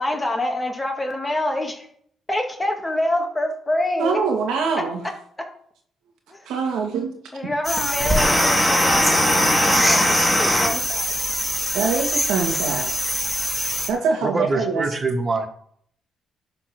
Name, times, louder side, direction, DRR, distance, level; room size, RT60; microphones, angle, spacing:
voice 1, 0.0-1.9 2.3-4.2 5.4-5.5 6.3-6.5 7.3-11.1, left 1 dB, 15° left, 2 dB, 2.1 m, -26 dB
voice 2, 4.0-5.0 6.5-7.1 11.7-12.9 13.9-14.9, right 5 dB, 85° right, 2 dB, 2.2 m, -23 dB
sound 1, 7.6-13.9, equal, ahead, 2.6 m, -21 dB
voice 3, 14.2-15.5, right 3 dB, 25° right, 6 dB, 1.7 m, -24 dB
11.5 x 4.5 x 6.2 m, 0.63 s
cardioid pair, 90°, 0 cm